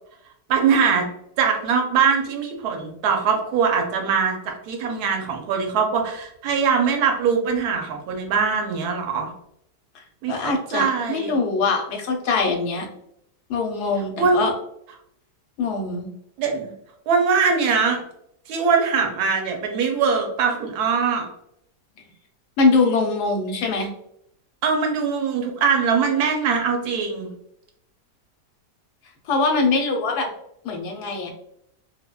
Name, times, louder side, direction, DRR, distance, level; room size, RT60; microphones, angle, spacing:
voice 1, 0.5-1.1 1.4-9.3 10.2-11.3 14.2-14.5 16.4-16.7 17.1-18.0 18.5-21.3 24.6-27.3, right 6 dB, 70° right, 2 dB, 1.1 m, -22 dB
voice 2, 10.3-12.9 13.5-14.5 15.6-16.1 22.6-23.9 29.3-30.3 30.6-31.3, left 4 dB, 75° left, 3 dB, 1.1 m, -22 dB
3.4 x 2.1 x 2.2 m, 0.74 s
omnidirectional pair, 1.8 m